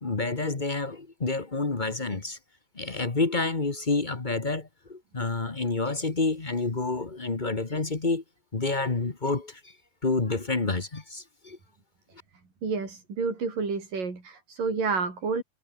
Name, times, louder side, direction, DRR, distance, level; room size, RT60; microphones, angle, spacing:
voice 1, 0.0-2.4 2.7-8.2 8.5-9.7 10.0-11.6, left 3 dB, 50° left, 0.5 m, -29 dB
voice 2, 12.6-15.4, right 4 dB, 75° right, 7.8 m, -29 dB
omnidirectional pair, 3.9 m